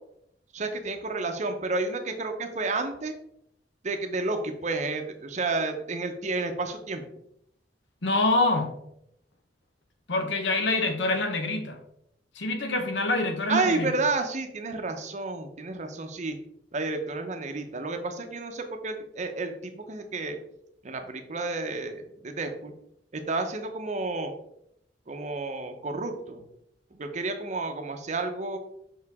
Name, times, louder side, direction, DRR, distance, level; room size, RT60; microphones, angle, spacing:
voice 1, 0.5-3.1 3.8-7.0 13.5-16.4 16.7-20.4 20.8-22.7 23.1-24.3 25.1-26.4 26.9-28.6, right 3 dB, 40° right, 6 dB, 0.7 m, -31 dB
voice 2, 8.0-8.7 10.1-11.8 12.3-13.9, left 2 dB, 80° left, 6 dB, 0.9 m, -26 dB
5.6 x 4.8 x 3.5 m, 0.76 s
head